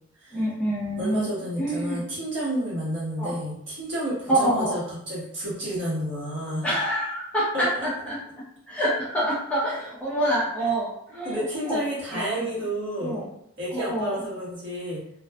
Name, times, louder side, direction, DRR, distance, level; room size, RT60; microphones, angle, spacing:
voice 1, 0.3-1.3 1.6-2.0 3.2-3.3 4.3-4.8 6.6-8.2 8.7-11.8 12.1-12.5 13.0-13.3 13.7-14.2, right 1 dB, 5° left, -7 dB, 0.6 m, -26 dB
voice 2, 1.0-6.7 7.5-7.6 11.2-13.2 13.6-15.0, right 1 dB, 70° right, -7 dB, 1.2 m, -30 dB
2.5 x 2.3 x 2.2 m, 0.72 s
head